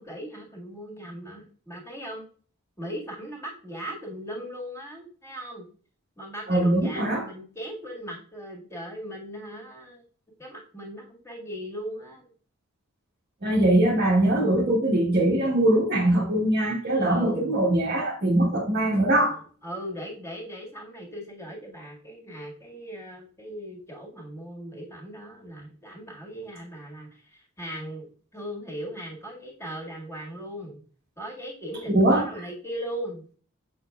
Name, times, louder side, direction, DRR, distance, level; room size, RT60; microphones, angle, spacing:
voice 1, 0.0-2.2 2.8-5.7 6.2-10.0 10.4-12.3 14.1-14.7 17.0-17.5 19.6-30.8 31.2-33.3, equal, 15° left, 1.9 m, -38 dB
voice 2, 6.5-7.2 13.4-19.4 31.9-32.3, right 1 dB, 50° right, 1.2 m, -22 dB
7.0 x 6.2 x 2.3 m
head